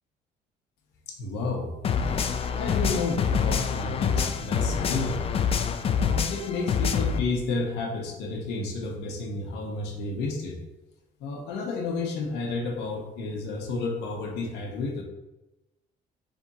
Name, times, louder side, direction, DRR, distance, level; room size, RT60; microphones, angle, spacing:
voice 1, 1.1-1.7 2.6-5.2 6.0-10.6 11.2-15.0, left 3 dB, 90° left, 1 dB, 1.0 m, -31 dB
sound 1, 1.8-7.2, left 6 dB, 35° left, 0.4 m, -26 dB
3.6 x 3.5 x 4.1 m, 1.0 s
cardioid pair, 110°, 17 cm